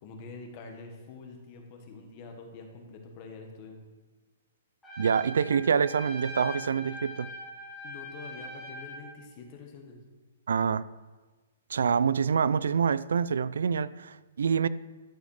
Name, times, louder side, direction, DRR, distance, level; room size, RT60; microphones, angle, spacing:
voice 1, 0.0-3.8 7.8-10.0, left 4 dB, 25° left, 1.5 m, -46 dB
Trumpet, 4.8-9.1, left 1 dB, 5° left, 2.3 m, -42 dB
voice 2, 5.0-7.3 10.5-10.9 11.7-14.7, right 6 dB, 90° right, 0.4 m, -26 dB
11.5 x 6.3 x 6.5 m
hypercardioid pair, 175°, 0 cm